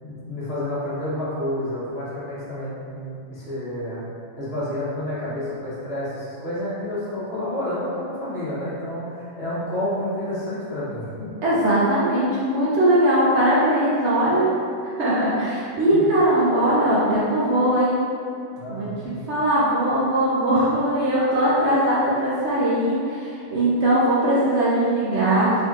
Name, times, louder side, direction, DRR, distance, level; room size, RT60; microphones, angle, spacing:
voice 1, 0.0-4.0 4.4-11.3 15.9-16.0 18.6-19.1, left 1 dB, 50° left, -9 dB, 1.3 m, -29 dB
voice 2, 11.4-14.5 14.8-18.0 18.7-25.6, right 1 dB, 60° right, -8 dB, 0.9 m, -20 dB
4.2 x 3.4 x 2.4 m, 2.4 s
omnidirectional pair, 1.4 m